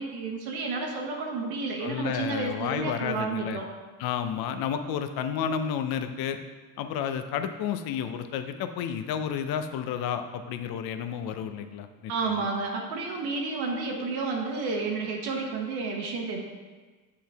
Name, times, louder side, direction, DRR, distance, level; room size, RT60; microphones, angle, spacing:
voice 1, 0.0-3.7 12.1-16.4, right 4 dB, 80° right, 0 dB, 1.0 m, -31 dB
voice 2, 1.8-3.6 4.0-6.4 6.8-12.5, left 8 dB, 65° left, 8 dB, 0.7 m, -31 dB
7.2 x 4.7 x 3.5 m, 1.4 s
supercardioid pair, 85°, 40 cm